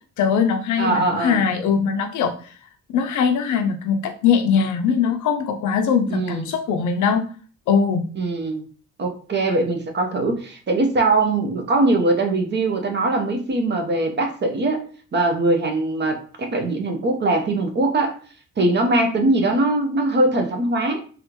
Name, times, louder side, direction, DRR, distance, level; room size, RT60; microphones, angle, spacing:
voice 1, 0.2-2.3 2.9-7.2 7.7-8.1, left 6 dB, 75° left, 6 dB, 0.6 m, -21 dB
voice 2, 0.8-1.4 6.1-6.4 8.2-8.6 9.0-14.8 15.1-18.2 18.6-21.0, right 2 dB, 35° right, 4 dB, 0.7 m, -21 dB
3.3 x 2.5 x 3.0 m, 0.42 s
cardioid pair, 90°, 30 cm